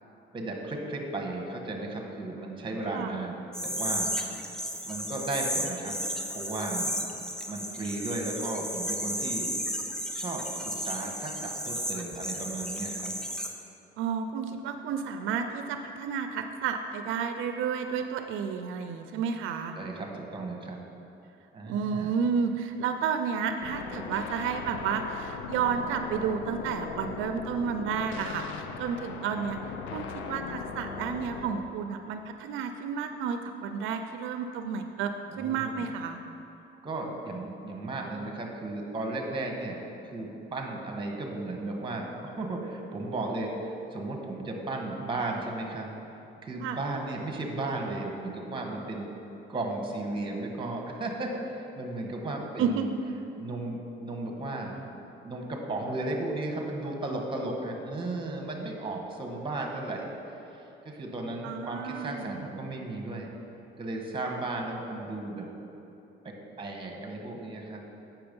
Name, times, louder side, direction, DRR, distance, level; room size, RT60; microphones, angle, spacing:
voice 1, 0.3-4.1 4.8-6.0 6.3-6.9 7.5-9.5 10.1-13.1 19.7-20.8 21.5-22.1 35.3-35.9 36.8-39.8 40.1-45.9 46.4-49.1 49.5-52.9 53.3-54.9 55.2-60.1 60.5-63.3 63.8-65.5 66.2-67.8, right 2 dB, 25° right, 1 dB, 1.3 m, -35 dB
sound 1, 3.5-13.5, equal, 5° left, 0.7 m, -33 dB
voice 2, 14.0-19.8 21.7-29.6 29.9-36.2 46.6-46.8 52.6-52.9 61.4-62.3, right 6 dB, 85° right, 7 dB, 0.5 m, -31 dB
sound 2, 23.6-31.6, left 5 dB, 85° left, 0.6 m, -39 dB
7.8 x 5.9 x 5.3 m, 3.0 s
cardioid pair, 110°, 20 cm